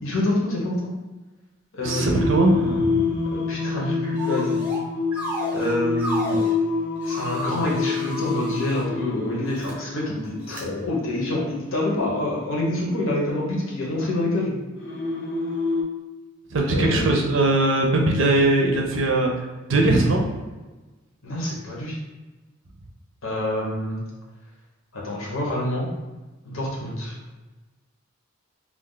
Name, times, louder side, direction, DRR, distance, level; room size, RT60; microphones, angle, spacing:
voice 1, 0.0-0.9 1.7-2.3 3.3-4.6 5.5-6.4 7.0-14.5 16.7-17.1 21.2-22.0 23.2-24.0 24.9-25.9 26.4-27.2, left 1 dB, 70° left, -4 dB, 0.9 m, -27 dB
Singing, 1.8-15.8, left 4 dB, 55° left, 0.5 m, -28 dB
voice 2, 1.8-3.0 16.5-20.2, right 2 dB, 65° right, 2 dB, 0.5 m, -20 dB
sound 1, 4.2-4.8 5.1-6.5 7.0-8.8 9.5-9.7 10.5-10.6, equal, 5° right, 0.5 m, -33 dB
2.4 x 2.3 x 3.8 m, 1.2 s
head